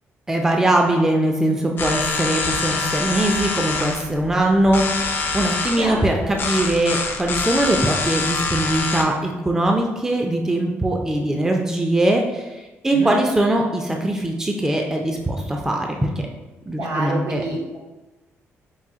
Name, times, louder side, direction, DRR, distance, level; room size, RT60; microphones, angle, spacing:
voice 1, 0.3-6.1 6.4-16.3 16.7-17.4, right 1 dB, 10° right, 1 dB, 0.4 m, -21 dB
sound 1, 1.8-9.0, left 4 dB, 45° left, 0.5 m, -25 dB
voice 2, 5.8-6.4 12.9-13.2 16.8-17.8, right 2 dB, 75° right, -1 dB, 1.0 m, -27 dB
5.5 x 2.2 x 3.6 m, 1.1 s
cardioid pair, 120°, 5 cm